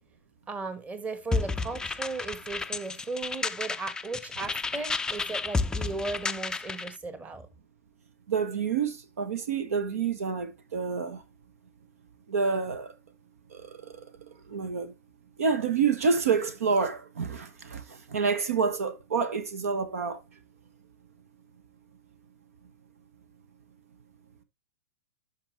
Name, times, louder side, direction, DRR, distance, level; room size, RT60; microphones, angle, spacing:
voice 1, 0.5-7.5, right 3 dB, 15° right, 1.5 m, -36 dB
sound 1, 1.3-6.9, left 4 dB, 10° left, 0.4 m, -32 dB
voice 2, 8.3-11.2 12.3-12.9 13.5-14.0 14.5-14.9 15.4-20.2, right 5 dB, 65° right, 1.2 m, -28 dB
12.5 x 5.4 x 3.1 m
figure-of-eight pair, 100°, 8 cm